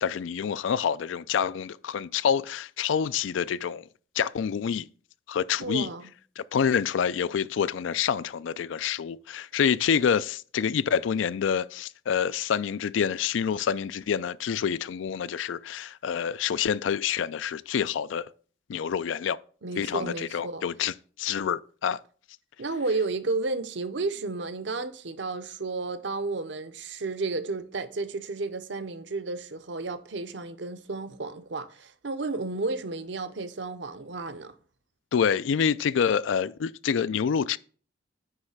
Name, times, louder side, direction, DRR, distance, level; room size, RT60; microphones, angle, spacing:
voice 1, 0.0-3.9 4.2-4.9 5.3-5.9 6.4-18.3 18.7-19.4 19.8-22.0 35.1-37.6, left 7 dB, 80° left, 0.4 m, -27 dB
voice 2, 5.6-6.1 19.6-20.6 22.6-34.5, right 3 dB, 70° right, 0.7 m, -32 dB
9.6 x 3.2 x 6.4 m
head